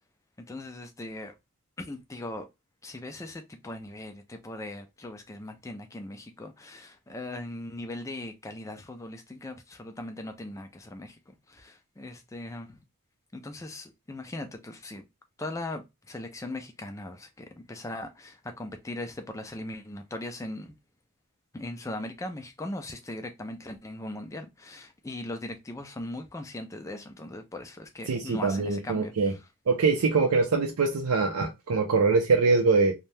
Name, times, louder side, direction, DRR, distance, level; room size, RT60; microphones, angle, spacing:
voice 1, 0.5-1.3 1.8-2.4 2.8-12.8 13.3-15.0 15.4-20.7 21.5-29.1, left 1 dB, 15° left, 0.3 m, -39 dB
voice 2, 28.1-29.3 29.7-32.9, right 4 dB, 85° right, 0.5 m, -23 dB
2.7 x 2.1 x 3.2 m
head